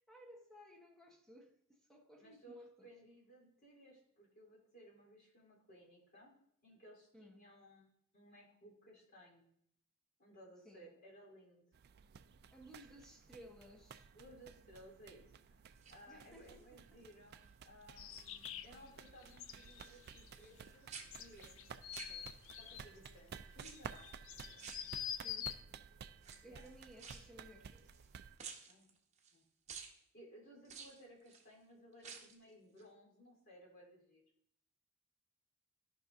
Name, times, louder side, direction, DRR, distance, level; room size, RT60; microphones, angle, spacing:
voice 1, 0.0-3.0 7.1-7.4 10.6-10.9 12.5-14.1 16.1-17.0 25.2-25.6 26.4-27.9, equal, ahead, 1.0 m, -59 dB
voice 2, 2.2-6.3 6.6-7.8 8.1-9.5 10.2-11.7 13.4-13.5 14.1-15.6 15.9-22.2 22.6-24.1 24.5-24.9 26.4-26.6 28.7-28.9 29.3-29.4 30.1-34.2, equal, 45° left, 3.6 m, -60 dB
sound 1, 11.7-28.4, right 6 dB, 50° right, 0.3 m, -55 dB
sound 2, 15.8-16.6 17.1-17.5 17.8-18.8 19.1-20.6 20.9-22.7 23.5-24.1 24.6-25.4 26.2-28.1 28.4-29.4 29.7-30.0 30.6-31.5 31.9-32.4 32.8-32.9, right 6 dB, 30° right, 0.9 m, -54 dB
sound 3, 18.0-25.5, left 9 dB, 65° left, 0.5 m, -47 dB
13.5 x 5.5 x 2.6 m
head